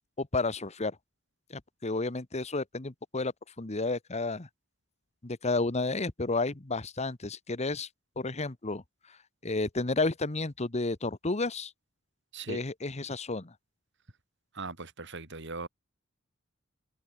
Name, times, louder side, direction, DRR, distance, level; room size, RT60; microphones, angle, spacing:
voice 1, 0.2-1.0 1.5-3.3 3.6-4.5 5.2-7.9 8.2-8.8 9.4-11.7 12.5-13.5, left 3 dB, 35° left, 1.2 m, -31 dB
voice 2, 14.5-15.7, right 3 dB, 60° right, 4.4 m, -39 dB
head